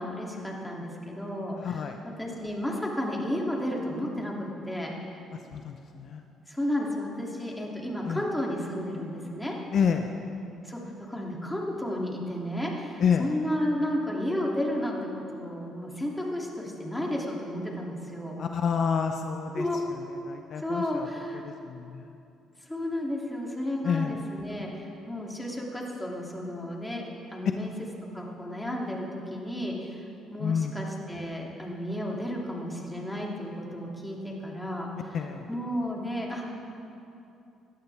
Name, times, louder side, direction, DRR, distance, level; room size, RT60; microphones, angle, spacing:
voice 1, 0.0-4.9 6.5-9.6 10.6-18.4 19.5-19.8 20.6-21.4 22.6-27.7 28.1-35.2 35.5-36.5, left 1 dB, 10° left, -2 dB, 2.7 m, -33 dB
voice 2, 1.6-2.0 5.5-6.2 8.1-8.2 9.7-10.1 13.0-13.3 18.4-19.6 20.3-21.1 21.6-22.1 23.8-24.1 30.4-30.7 35.1-35.5, left 7 dB, 60° left, 5 dB, 0.7 m, -28 dB
17.5 x 11.5 x 3.5 m, 2.8 s
supercardioid pair, 65°, 0 cm